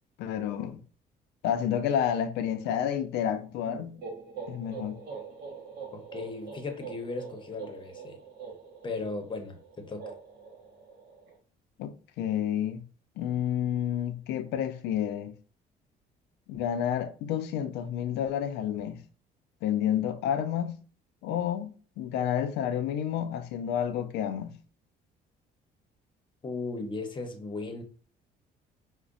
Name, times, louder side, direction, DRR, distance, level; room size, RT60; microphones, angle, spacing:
voice 1, 0.2-0.8 1.4-4.0 4.5-5.0 11.8-12.8 13.2-15.3 16.5-19.0 19.6-20.8 21.2-24.6, left 9 dB, 90° left, 0.5 m, -30 dB
sound 1, 3.6-11.4, right 5 dB, 65° right, 1.2 m, -44 dB
voice 2, 5.9-8.2 8.8-10.1 26.4-27.8, left 3 dB, 30° left, 0.8 m, -36 dB
5.0 x 2.1 x 2.5 m
cardioid pair, 110°, 17 cm